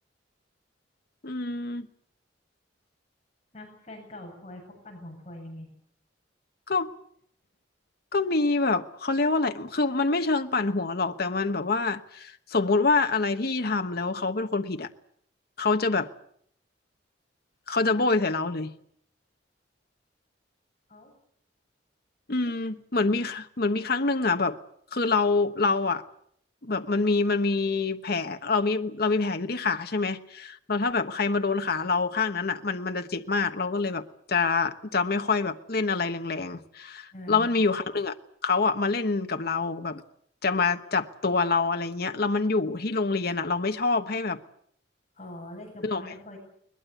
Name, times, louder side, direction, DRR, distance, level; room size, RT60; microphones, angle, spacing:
voice 1, 1.2-1.9 6.7-6.9 8.1-14.9 15.6-16.1 17.7-18.7 22.3-24.6 24.9-26.0 26.6-38.2 38.4-40.0 40.4-44.4 45.8-46.0, left 3 dB, 55° left, 1.1 m, -26 dB
voice 2, 3.5-5.7 20.9-21.1 22.4-22.5 37.1-37.5 45.1-46.4, left 1 dB, 35° left, 7.7 m, -43 dB
22.0 x 21.0 x 8.2 m
head